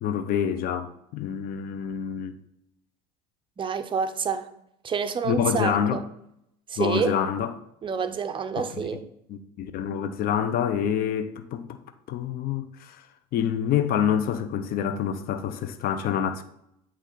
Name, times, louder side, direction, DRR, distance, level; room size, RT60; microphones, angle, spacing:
voice 1, 0.0-2.4 5.2-6.0 6.8-7.5 8.6-8.7 9.3-11.8 12.1-13.0 13.3-16.4, left 8 dB, 50° left, 0.6 m, -27 dB
voice 2, 3.6-4.5 4.8-6.0 6.7-7.2 7.8-9.0, right 6 dB, 25° right, 0.6 m, -28 dB
8.2 x 3.1 x 3.9 m
supercardioid pair, 90°, 19 cm